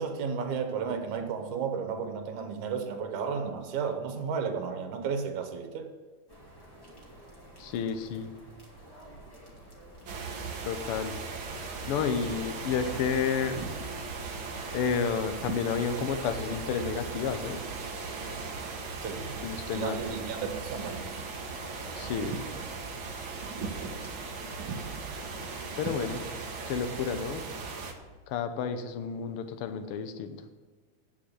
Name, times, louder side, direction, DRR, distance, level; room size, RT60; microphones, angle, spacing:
voice 1, 0.0-5.9 19.0-19.4 19.7-21.0, right 6 dB, 75° right, 2.5 m, -33 dB
sound 1, 6.3-25.3, right 2 dB, 10° left, 2.3 m, -50 dB
voice 2, 7.6-8.3 10.6-11.1 11.9-13.6 14.7-17.6 19.4-20.0 22.0-22.3 25.8-26.2 26.7-27.4 28.3-30.4, left 6 dB, 70° left, 1.3 m, -31 dB
sound 2, 10.0-27.9, right 4 dB, 55° right, 1.5 m, -38 dB
9.6 x 6.3 x 8.2 m
omnidirectional pair, 3.5 m